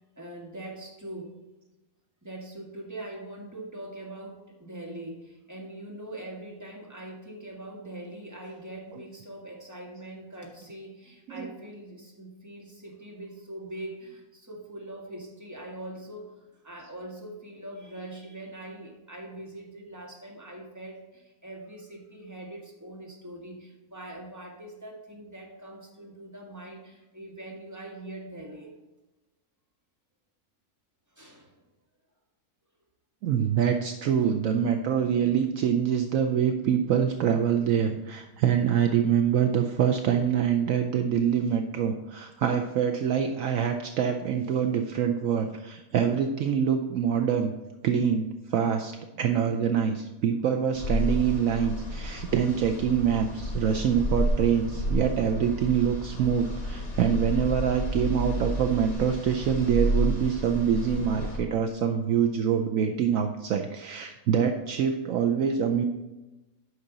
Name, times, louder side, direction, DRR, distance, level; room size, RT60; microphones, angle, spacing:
voice 1, 0.2-1.3 2.2-28.7 31.2-31.5 34.2-34.3, right 1 dB, 10° right, -2 dB, 1.8 m, -42 dB
voice 2, 33.2-47.5 47.8-65.8, right 8 dB, 70° right, 5 dB, 1.0 m, -25 dB
sound 1, 50.7-61.4, equal, 70° left, 2.4 m, -31 dB
9.5 x 5.8 x 4.0 m, 1.0 s
omnidirectional pair, 1.6 m